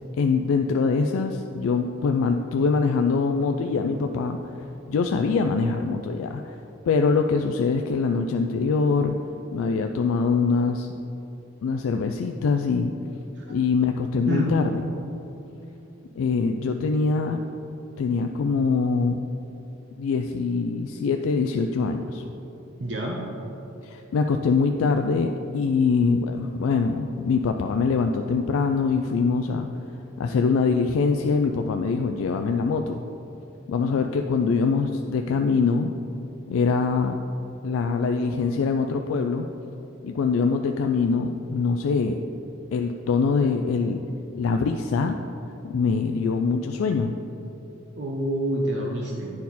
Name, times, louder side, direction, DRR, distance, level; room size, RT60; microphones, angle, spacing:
voice 1, 0.2-4.5 4.9-6.6 6.9-9.1 9.5-10.9 11.6-12.9 13.5-14.7 16.2-17.4 18.0-19.2 20.0-22.2 23.8-29.7 30.2-33.0 33.7-35.9 36.5-37.2 37.6-39.5 40.0-42.2 42.7-44.0 44.3-45.2 45.6-47.1, left 4 dB, 90° left, 5 dB, 0.3 m, -23 dB
voice 2, 22.8-23.2 48.0-49.3, right 1 dB, 55° right, -2 dB, 0.7 m, -27 dB
9.8 x 4.2 x 4.1 m, 2.9 s
head